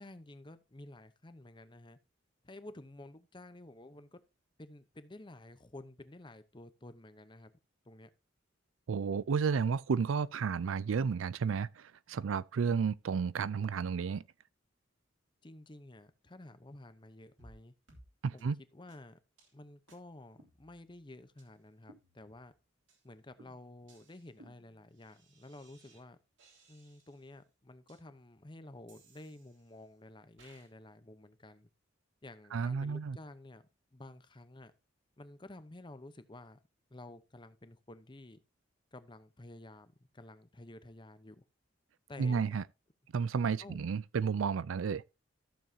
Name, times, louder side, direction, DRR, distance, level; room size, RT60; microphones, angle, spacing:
voice 1, 0.0-2.0 2.4-4.2 4.6-7.5 7.8-8.1 15.4-17.7 18.3-19.2 19.5-22.5 23.0-26.2 26.7-31.7 32.2-33.6 33.9-34.7 35.2-36.6 36.9-38.4 38.9-41.4 42.1-42.6 43.6-43.8 44.2-44.3, left 2 dB, 25° left, 0.8 m, -52 dB
voice 2, 8.9-14.2 18.2-18.6 32.5-33.2 42.2-42.6 43.1-45.0, right 6 dB, 85° right, 0.4 m, -32 dB
sound 1, 17.4-17.6 17.9-18.1 18.4-18.5 18.9-19.0 19.4-19.5 19.9-20.0 20.4-21.0 21.4-21.5 21.9-22.5 22.9-23.0 23.4-26.0 26.4-27.3 27.9-28.0 28.9-29.8 30.4-30.7, right 2 dB, 70° right, 3.2 m, -62 dB
14.0 x 7.1 x 2.8 m
head